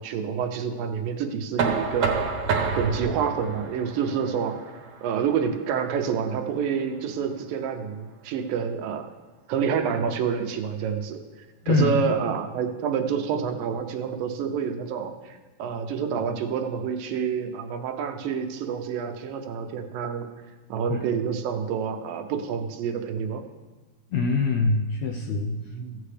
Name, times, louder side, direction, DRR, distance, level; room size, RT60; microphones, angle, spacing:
voice 1, 0.0-2.2 2.8-4.6 5.0-9.1 9.5-11.2 11.7-20.3 20.7-23.4 25.7-26.0, right 7 dB, 90° right, 5 dB, 2.6 m, -28 dB
Knock, 1.6-7.4, right 5 dB, 60° right, 1.6 m, -30 dB
voice 2, 11.6-12.0 20.9-21.1 24.1-25.6, left 3 dB, 80° left, 1 dB, 1.6 m, -24 dB
15.5 x 8.7 x 3.3 m, 1.3 s
omnidirectional pair, 3.9 m